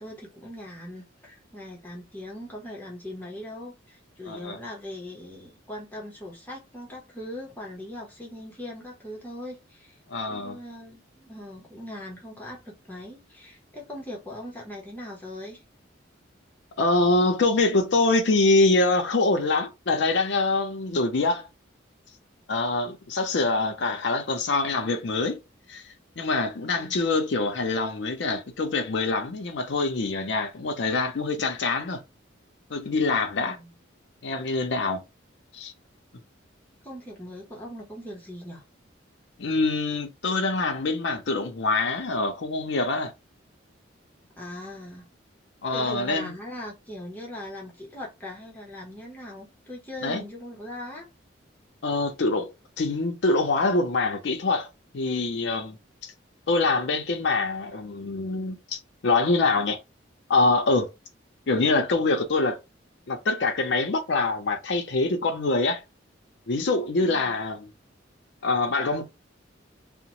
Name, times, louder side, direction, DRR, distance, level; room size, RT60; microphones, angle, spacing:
voice 1, 0.0-10.0 10.3-15.6 26.7-27.2 33.4-33.7 34.9-35.0 36.8-38.6 44.4-45.1 45.7-51.1, left 1 dB, 10° left, 0.8 m, -40 dB
voice 2, 4.3-4.6 10.1-10.6 16.8-21.5 22.5-25.4 25.7-25.8 26.2-32.0 32.7-33.6 34.2-35.0 35.5-35.7 39.4-43.1 45.6-46.3 50.0-50.2 51.8-52.5 52.8-54.7 54.9-55.8 56.0-56.1 56.5-59.8 60.3-60.9 61.5-62.6 63.1-65.8 66.5-67.7 68.4-69.0, left 3 dB, 65° left, 0.5 m, -24 dB
2.8 x 2.0 x 2.9 m
head